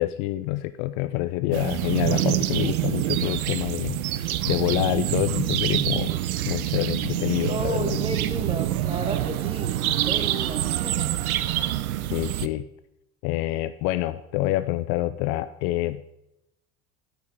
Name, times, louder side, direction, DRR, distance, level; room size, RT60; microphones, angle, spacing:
voice 1, 0.0-4.0 4.4-6.1 6.5-8.0 12.1-12.7 13.2-16.0, left 16 dB, 50° left, 13 dB, 0.6 m, -27 dB
sound 1, 1.5-12.5, right 13 dB, 70° right, 0.7 m, -26 dB
voice 2, 7.5-11.1, right 2 dB, 10° right, 6 dB, 1.7 m, -33 dB
11.5 x 6.6 x 4.8 m, 0.83 s
figure-of-eight pair, 75°, 44 cm